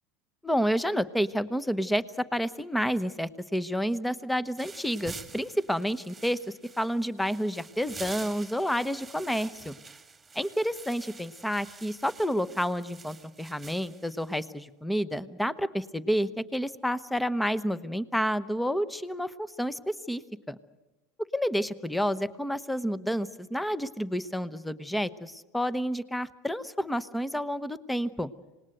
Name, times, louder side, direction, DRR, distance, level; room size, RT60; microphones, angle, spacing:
voice 1, 0.4-6.4 6.8-9.7 10.3-20.2 20.5-20.6 21.3-28.3, equal, 5° left, 16 dB, 1.0 m, -29 dB
sound 1, 4.6-14.4, right 4 dB, 15° right, 1.8 m, -47 dB
26.5 x 19.5 x 8.0 m, 1.1 s
supercardioid pair, 110°, 0 cm